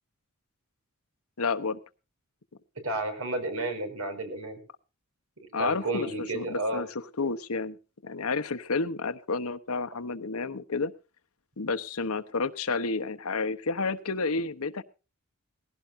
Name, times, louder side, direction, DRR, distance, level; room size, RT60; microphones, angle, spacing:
voice 1, 1.4-1.8 5.5-6.1 6.3-6.9 7.2-7.8 8.0-10.9 11.6-14.8, left 4 dB, 80° left, 10 dB, 1.0 m, -30 dB
voice 2, 2.8-4.6 5.4-6.8, right 2 dB, 70° right, 7 dB, 5.1 m, -32 dB
19.5 x 16.0 x 2.7 m, 0.32 s
head